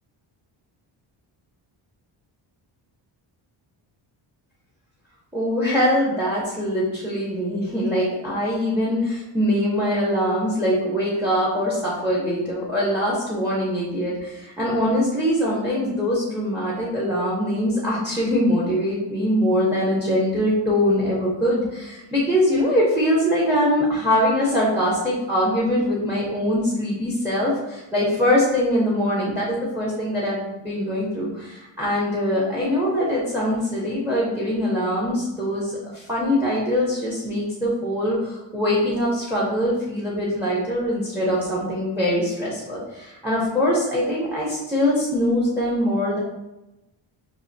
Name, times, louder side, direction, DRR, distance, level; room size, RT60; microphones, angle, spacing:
voice 1, 5.3-46.2, equal, 5° right, -6 dB, 0.6 m, -23 dB
6.1 x 2.5 x 2.6 m, 0.97 s
wide cardioid pair, 175°, 49 cm